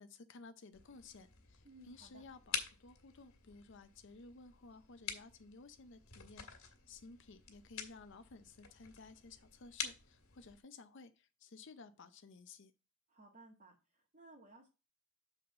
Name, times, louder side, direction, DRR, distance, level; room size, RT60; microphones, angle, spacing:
voice 1, 0.0-12.7, left 3 dB, 60° left, 9 dB, 0.6 m, -56 dB
sound 1, 0.7-10.6, left 7 dB, 85° left, 1.9 m, -48 dB
voice 2, 1.6-2.2 13.1-14.7, right 2 dB, 40° right, -3 dB, 1.8 m, -59 dB
7.2 x 3.9 x 5.6 m, 0.30 s
head